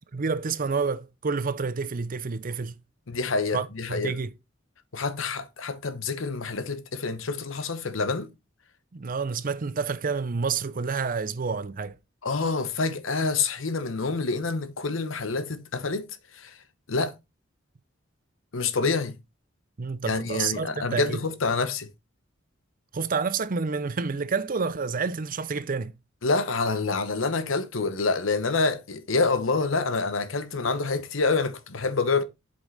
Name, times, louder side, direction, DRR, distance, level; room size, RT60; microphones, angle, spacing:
voice 1, 0.1-2.7 3.5-4.3 8.9-12.0 19.8-21.2 22.9-25.9, right 5 dB, 45° right, 0.6 m, -29 dB
voice 2, 3.1-4.1 4.9-8.3 12.2-16.1 16.3-16.5 16.9-17.1 18.5-19.2 20.1-21.9 26.2-32.2, left 4 dB, 80° left, 1.0 m, -27 dB
8.0 x 5.4 x 4.1 m
head